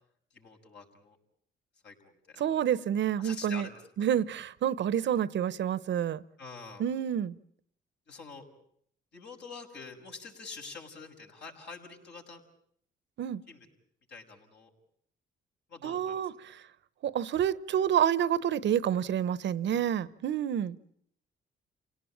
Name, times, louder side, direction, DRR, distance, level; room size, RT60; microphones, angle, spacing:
voice 1, 0.3-1.2 1.8-2.4 3.2-4.1 6.4-6.8 8.1-8.4 9.1-12.4 13.5-13.7 14.1-14.7 15.7-16.2, left 4 dB, 60° left, 6.3 m, -46 dB
voice 2, 2.4-3.7 4.0-6.2 6.8-7.3 13.2-13.4 15.8-16.6 17.0-20.8, right 9 dB, 65° right, 1.0 m, -28 dB
29.5 x 18.0 x 8.8 m
cardioid pair, 90°, 20 cm